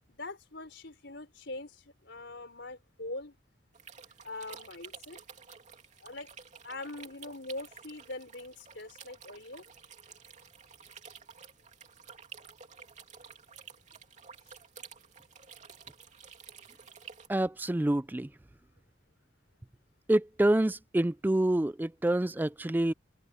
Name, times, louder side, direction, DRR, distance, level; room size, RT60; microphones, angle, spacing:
voice 1, 0.1-3.4 4.2-5.2 6.0-6.3 6.6-9.6 14.5-14.6, left 2 dB, 65° left, 4.6 m, -43 dB
sound 1, 3.7-17.3, right 6 dB, 40° right, 2.9 m, -51 dB
voice 2, 17.3-18.3 20.1-22.9, right 1 dB, 10° right, 0.3 m, -27 dB
open air
head